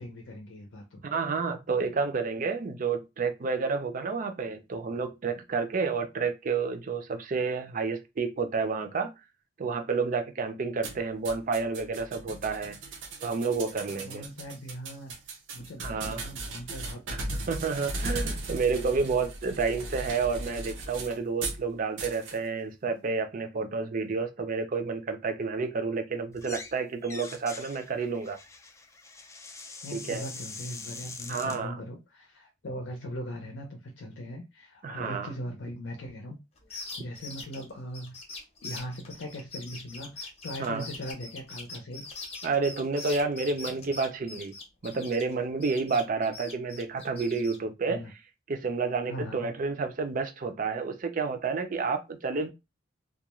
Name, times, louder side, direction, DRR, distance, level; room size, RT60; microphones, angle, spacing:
voice 1, 0.0-1.0 13.9-15.1 15.5-17.5 29.8-36.4 36.7-38.2 38.6-42.0 47.9-48.1 49.1-49.5, equal, 75° left, 0.6 m, -40 dB
voice 2, 1.0-9.1 9.6-12.8 13.2-14.2 15.8-16.2 17.5-28.4 29.9-30.2 31.3-31.8 34.8-35.3 40.6-40.8 42.4-44.5 44.8-48.0 48.5-52.5, right 4 dB, 45° right, 0.4 m, -30 dB
sound 1, 10.8-21.6 22.0-22.4, right 2 dB, 90° right, 0.6 m, -37 dB
sound 2, 26.3-26.8 27.0-31.6, left 4 dB, 15° left, 0.3 m, -43 dB
sound 3, 36.6-45.3 45.6-47.6, left 3 dB, 35° left, 0.7 m, -42 dB
2.4 x 2.2 x 3.0 m
head